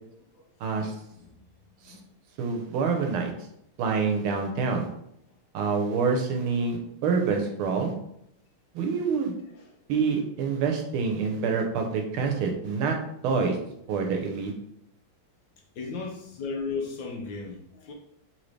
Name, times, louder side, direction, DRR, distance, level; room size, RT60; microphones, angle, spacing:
voice 1, 0.6-0.9 1.9-2.0 2.4-3.3 3.8-4.9 5.5-7.9 8.7-9.3 9.9-13.0 13.2-13.6 13.9-14.5, right 5 dB, 80° right, 3 dB, 1.6 m, -26 dB
voice 2, 15.8-17.9, left 4 dB, 70° left, 1 dB, 1.2 m, -36 dB
4.0 x 3.7 x 3.2 m, 0.76 s
omnidirectional pair, 2.4 m